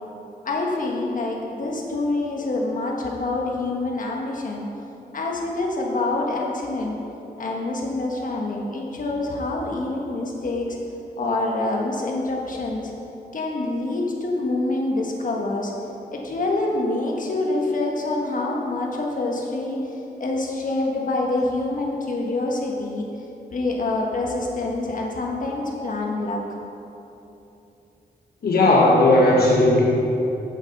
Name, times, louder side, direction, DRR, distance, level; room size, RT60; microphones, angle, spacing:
voice 1, 0.4-4.7 5.1-7.0 7.4-10.7 11.2-12.9 13.3-15.7 16.1-19.8 20.2-23.1 23.5-26.4, left 2 dB, 55° left, -1 dB, 1.5 m, -26 dB
voice 2, 28.4-29.8, left 2 dB, 80° left, -3 dB, 1.2 m, -16 dB
8.4 x 7.4 x 5.3 m, 3.0 s
wide cardioid pair, 90°, 16 cm